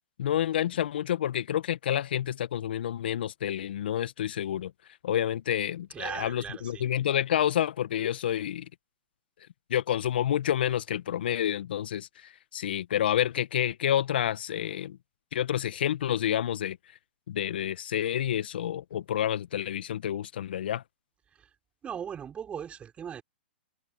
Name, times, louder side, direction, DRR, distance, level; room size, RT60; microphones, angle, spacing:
voice 1, 0.2-4.7 5.0-8.6 9.7-15.0 15.3-16.8 17.3-20.8, left 10 dB, 65° left, 1.6 m, -29 dB
voice 2, 5.9-6.8 21.4-21.5 21.8-23.2, right 8 dB, 20° right, 5.6 m, -38 dB
hypercardioid pair, 115°, 6 cm